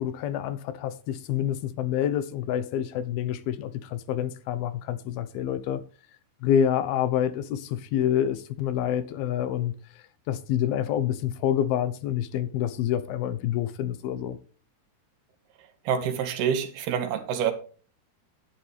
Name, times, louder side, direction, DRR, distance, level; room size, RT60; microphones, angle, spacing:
voice 1, 0.0-5.8 6.4-9.7 10.3-14.4, left 10 dB, 75° left, 2.8 m, -27 dB
voice 2, 15.9-17.5, right 8 dB, 80° right, 3.7 m, -27 dB
11.0 x 11.0 x 3.4 m
omnidirectional pair, 4.5 m